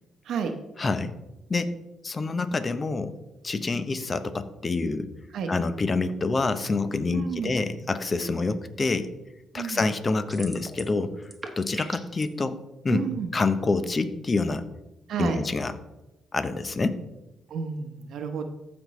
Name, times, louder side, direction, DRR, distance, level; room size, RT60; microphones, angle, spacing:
voice 1, 0.8-1.1 1.5-1.8 2.0-3.1 3.4-5.1 5.5-9.1 9.5-11.1 11.6-12.6 12.8-13.0 13.3-14.6 15.2-15.7 16.3-17.0, left 3 dB, 30° left, 11 dB, 0.7 m, -27 dB
voice 2, 7.1-7.5 9.5-9.8 12.9-13.3 15.1-15.4 17.5-18.4, right 6 dB, 70° right, 6 dB, 0.9 m, -30 dB
sound 1, 10.3-11.0 11.2-12.2, right 2 dB, 20° right, 1.2 m, -39 dB
14.5 x 5.2 x 3.2 m, 0.97 s
cardioid pair, 90°, 0 cm